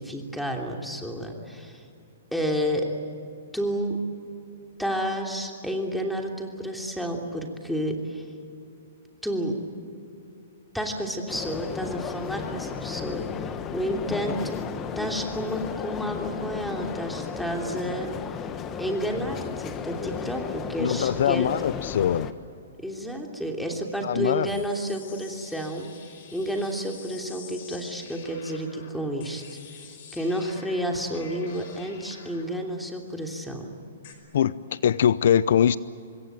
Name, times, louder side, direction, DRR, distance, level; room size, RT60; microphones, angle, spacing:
voice 1, 0.0-1.8 2.3-2.9 3.5-4.0 4.8-8.3 9.2-9.6 10.7-14.6 14.9-18.1 18.8-21.5 22.8-25.9 26.3-33.7, equal, ahead, 2 dB, 3.0 m, -30 dB
sound 1, 11.3-22.3, left 7 dB, 20° left, 1.3 m, -34 dB
voice 2, 20.8-22.3 24.0-24.5 34.3-35.8, left 9 dB, 65° left, 18 dB, 0.6 m, -22 dB
sound 2, 24.5-34.2, left 7 dB, 50° left, 5.1 m, -48 dB
26.0 x 21.5 x 9.2 m, 2.6 s
hypercardioid pair, 150°, 0 cm